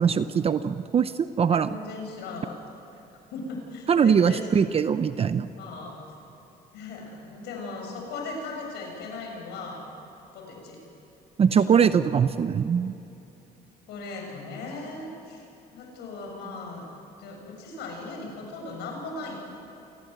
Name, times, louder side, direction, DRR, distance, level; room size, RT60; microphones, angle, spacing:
voice 1, 0.0-1.7 3.9-5.5 11.4-12.9, right 7 dB, 35° right, 12 dB, 0.7 m, -22 dB
voice 2, 1.5-2.5 2.9-3.0 3.3-4.6 5.6-6.0 6.7-9.8 10.3-10.8 11.5-11.8 13.9-15.5 15.7-16.8 17.2-19.4, left 3 dB, 80° left, 1 dB, 7.5 m, -38 dB
27.5 x 19.5 x 8.2 m, 2.9 s
cardioid pair, 110°, 17 cm